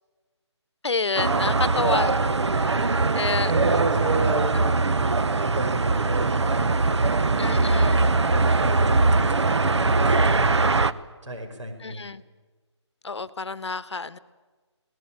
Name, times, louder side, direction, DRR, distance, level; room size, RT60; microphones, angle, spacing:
voice 1, 0.8-3.5 7.4-8.0 11.8-12.2 13.0-14.2, left 4 dB, 65° left, 15 dB, 1.1 m, -29 dB
sound 1, 1.2-10.9, right 3 dB, 70° right, 0.9 m, -21 dB
voice 2, 1.7-2.1 3.4-6.6 7.4-8.0 8.3-10.9 11.2-12.1, right 2 dB, 85° right, 5 dB, 5.6 m, -33 dB
23.5 x 18.5 x 8.8 m, 1.3 s
hypercardioid pair, 180°, 15 cm